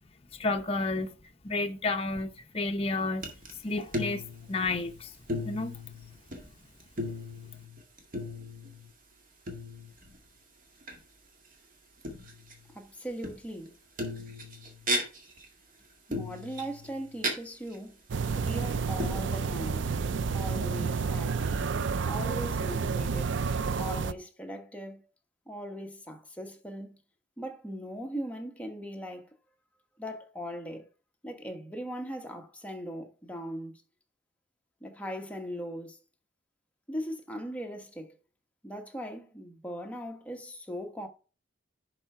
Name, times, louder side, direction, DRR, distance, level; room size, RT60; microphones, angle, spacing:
voice 1, 0.3-1.1 1.4-3.3 3.6-4.2 4.5-5.1 5.4-5.7, left 3 dB, 30° left, 0.7 m, -31 dB
sound 1, 3.2-3.5 3.8-5.0 5.3-6.5 6.8-8.9 9.5-10.2 10.8-11.0 12.0-12.7 13.2-13.7 14.0-15.5 16.1-17.3 17.7-17.8 18.3-18.6 19.0-19.1, equal, 45° right, 2.0 m, -36 dB
voice 2, 12.7-13.7 16.1-18.0 18.3-21.7 22.0-23.3 23.8-25.0 25.5-27.0 27.4-29.3 30.0-30.9 31.2-33.8 34.8-36.0 36.9-38.1 38.6-41.1, equal, 10° left, 1.2 m, -39 dB
sound 2, 18.1-24.1, right 5 dB, 70° right, 0.5 m, -30 dB
11.0 x 4.6 x 4.4 m
head